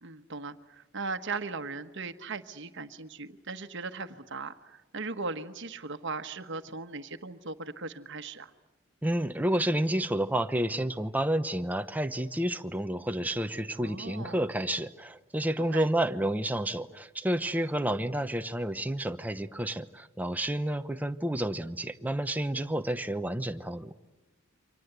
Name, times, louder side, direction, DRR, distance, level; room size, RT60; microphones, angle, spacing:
voice 1, 0.0-8.5 13.8-14.5 15.7-15.9, right 4 dB, 60° right, 9 dB, 1.3 m, -38 dB
voice 2, 9.0-23.9, right 1 dB, 10° right, 8 dB, 0.9 m, -30 dB
29.0 x 25.0 x 8.1 m, 1.1 s
head